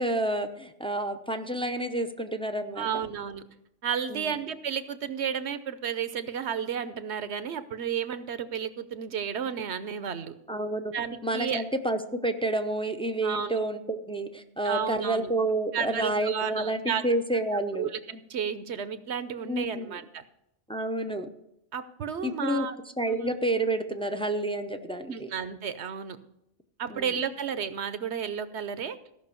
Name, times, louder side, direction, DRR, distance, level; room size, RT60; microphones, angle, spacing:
voice 1, 0.0-3.0 4.1-4.3 10.5-10.9 11.2-17.9 19.5-20.0 20.7-21.3 22.2-22.7 23.0-25.3 26.9-27.1, right 1 dB, 5° left, 7 dB, 0.5 m, -29 dB
voice 2, 2.8-3.4 3.8-10.3 10.9-11.6 13.2-13.5 14.6-15.3 15.7-17.0 17.8-20.2 21.7-22.8 23.2-23.4 25.1-26.2 26.8-29.0, right 7 dB, 65° right, 12 dB, 1.0 m, -32 dB
15.5 x 6.0 x 6.9 m, 0.82 s
omnidirectional pair, 1.2 m